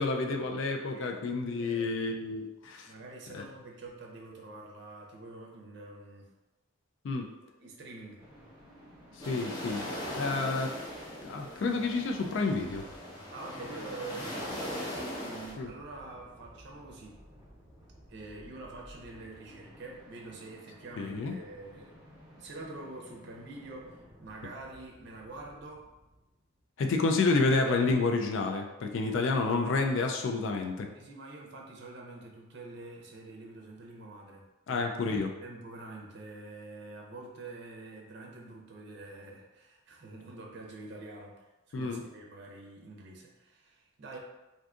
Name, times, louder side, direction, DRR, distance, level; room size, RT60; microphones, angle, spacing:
voice 1, 0.0-2.9 3.3-3.4 7.0-7.3 9.1-9.9 10.2-10.7 11.2-12.8 15.6-15.7 21.0-21.4 26.8-30.9 34.7-35.3 41.7-42.0, left 3 dB, 60° left, 3 dB, 0.3 m, -29 dB
voice 2, 0.8-1.1 1.6-1.9 2.9-6.3 7.4-8.2 13.3-14.9 15.2-17.2 18.1-21.9 22.4-25.9 30.9-34.8 35.4-44.2, right 2 dB, 55° right, -1 dB, 0.5 m, -46 dB
sound 1, 8.2-26.7, equal, 10° right, 1.0 m, -55 dB
sound 2, 9.2-15.5, equal, 20° left, 0.6 m, -39 dB
2.5 x 2.5 x 3.5 m, 1.0 s
head